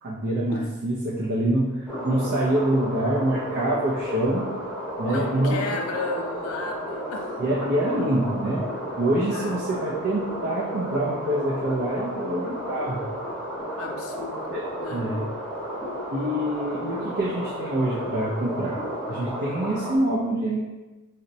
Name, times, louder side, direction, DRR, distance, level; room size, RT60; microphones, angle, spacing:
voice 1, 0.0-4.5 5.0-5.6 7.4-8.7 9.0-13.0 14.5-14.6 14.9-15.2 16.1-18.8 19.1-20.6, right 1 dB, 55° right, -5 dB, 0.5 m, -25 dB
sound 1, 1.9-20.0, equal, 5° left, 0.6 m, -33 dB
voice 2, 5.1-7.4 9.3-9.6 13.8-14.5 14.8-15.1, left 3 dB, 70° left, 2 dB, 0.4 m, -34 dB
3.9 x 2.1 x 2.6 m, 1.1 s
head